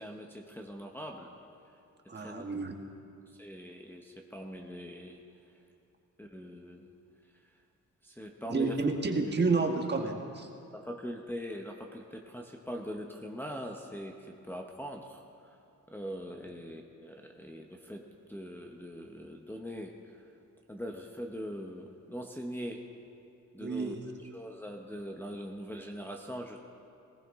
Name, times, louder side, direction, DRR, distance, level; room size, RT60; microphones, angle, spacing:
voice 1, 0.0-1.4 2.1-2.5 3.3-5.2 6.2-6.9 7.3-7.5 8.0-8.8 10.7-15.6 15.9-20.3 20.7-22.9 23.5-24.0 24.3-26.6, equal, 5° left, 0 dB, 0.8 m, -42 dB
voice 2, 2.1-2.7 8.5-10.5 23.6-24.0, right 3 dB, 35° right, 3 dB, 1.3 m, -30 dB
19.5 x 18.0 x 3.6 m, 2.6 s
wide cardioid pair, 145°, 31 cm